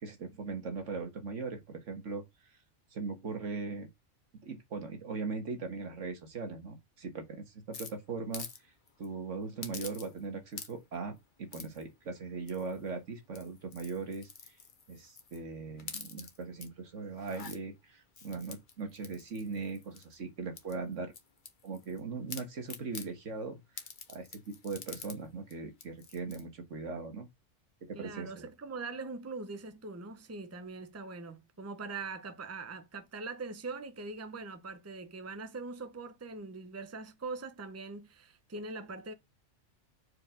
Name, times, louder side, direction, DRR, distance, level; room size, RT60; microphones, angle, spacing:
voice 1, 0.0-2.2 2.9-3.9 4.4-8.5 9.0-14.3 14.9-21.1 21.6-23.6 24.1-27.3 27.8-28.4, right 4 dB, 80° right, 1.8 m, -39 dB
sound 1, 7.7-8.6 8.9-9.1 9.6-10.3 10.5-11.0 11.5-11.8 12.5-12.9 13.3-15.4 15.8-16.7 17.1-17.6 18.2-20.2 20.6-22.0 22.3-23.1 23.8-25.2 25.5-25.6 25.8-26.4, left 5 dB, 45° left, 1.1 m, -46 dB
voice 2, 27.9-39.1, right 3 dB, 15° right, 0.7 m, -42 dB
5.1 x 4.8 x 5.0 m
omnidirectional pair, 1.3 m